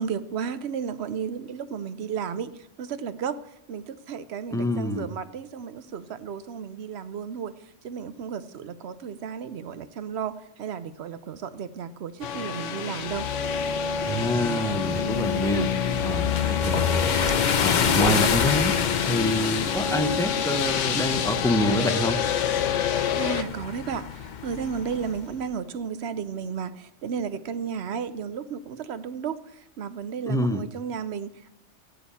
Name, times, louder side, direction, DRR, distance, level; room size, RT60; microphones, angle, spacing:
voice 1, 0.0-3.4 3.7-13.3 23.2-31.5, right 7 dB, 65° right, 13 dB, 0.9 m, -33 dB
voice 2, 4.5-5.1 14.1-15.7 16.0-17.0 17.3-18.8 19.1-22.2 30.3-30.6, left 1 dB, 5° left, 8 dB, 0.5 m, -26 dB
sound 1, 12.2-23.4, left 8 dB, 85° left, 1.1 m, -28 dB
sound 2, 13.1-25.2, left 7 dB, 50° left, 0.7 m, -28 dB
15.0 x 9.9 x 4.1 m, 0.83 s
omnidirectional pair, 1.2 m